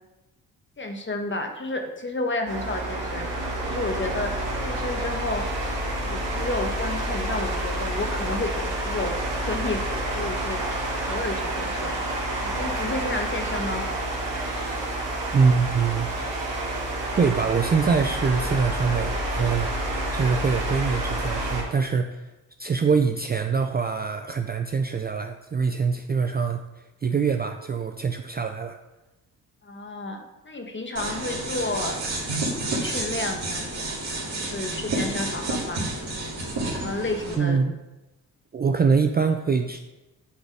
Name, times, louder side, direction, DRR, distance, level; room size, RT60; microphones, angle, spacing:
voice 1, 0.8-3.3 3.6-4.3 4.6-5.4 6.0-9.1 9.4-10.6 11.0-12.0 12.4-13.8 29.6-32.0 32.6-33.7 34.3-35.8 36.7-37.6, left 2 dB, 25° left, 5 dB, 1.4 m, -31 dB
sound 1, 2.5-21.6, right 1 dB, 80° right, 1.9 m, -29 dB
voice 2, 15.3-16.1 17.2-19.7 20.1-22.3 22.6-28.8 37.4-37.8 38.5-39.8, right 5 dB, 25° right, 6 dB, 0.5 m, -24 dB
sound 2, 31.0-37.4, right 2 dB, 60° right, 2.5 m, -30 dB
8.4 x 4.0 x 4.8 m, 1.0 s
hypercardioid pair, 45°, 43 cm